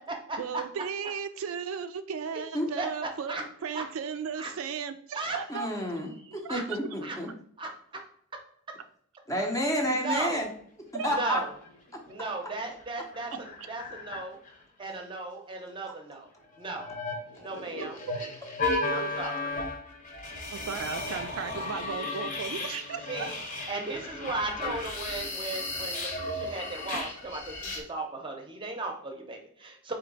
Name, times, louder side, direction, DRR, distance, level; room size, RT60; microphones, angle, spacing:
voice 1, 0.4-5.7 6.3-7.0 10.9-11.1 17.7-18.1 18.7-19.1 20.5-23.3, right 6 dB, 75° right, 9 dB, 0.3 m, -36 dB
voice 2, 5.5-7.3 9.3-10.5 10.9-11.4 14.8-15.0 17.4-17.5, equal, 15° left, 1 dB, 0.6 m, -30 dB
voice 3, 6.2-6.6 7.0-7.1 7.6-7.7 9.8-10.4 11.1-11.5 12.1-13.3 13.7-14.4 14.8-16.3 16.6-16.9 17.4-18.0 18.9-19.5 23.1-23.3 23.7-29.9, right 2 dB, 25° right, 2 dB, 0.7 m, -36 dB
sound 1, 11.6-12.1 12.3-12.4 12.7-14.6 16.5-27.8, left 2 dB, 40° left, 0.9 m, -35 dB
4.4 x 2.8 x 3.9 m, 0.62 s
head